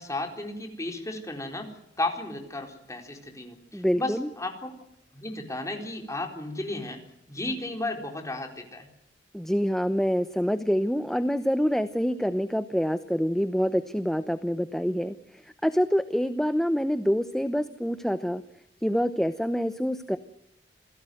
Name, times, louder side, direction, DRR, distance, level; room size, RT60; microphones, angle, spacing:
voice 1, 0.0-4.7 5.1-7.0 7.3-8.9, left 2 dB, 20° left, 4 dB, 4.2 m, -34 dB
voice 2, 3.7-4.3 9.3-18.4 18.8-20.2, equal, 5° left, 11 dB, 0.8 m, -26 dB
27.5 x 17.0 x 7.9 m, 0.79 s
head